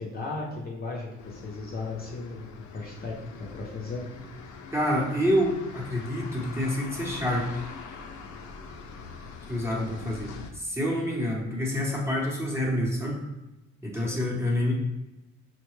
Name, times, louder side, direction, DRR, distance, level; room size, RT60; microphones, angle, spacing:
voice 1, 0.0-2.5 2.7-4.0 13.9-14.2, left 3 dB, 30° left, -2 dB, 0.6 m, -36 dB
sound 1, 1.2-10.5, left 5 dB, 75° left, 0.6 m, -43 dB
voice 2, 4.7-7.6 9.5-13.2 13.8-14.7, equal, 10° right, -3 dB, 0.8 m, -27 dB
5.5 x 2.2 x 3.1 m, 0.99 s
cardioid pair, 135°, 29 cm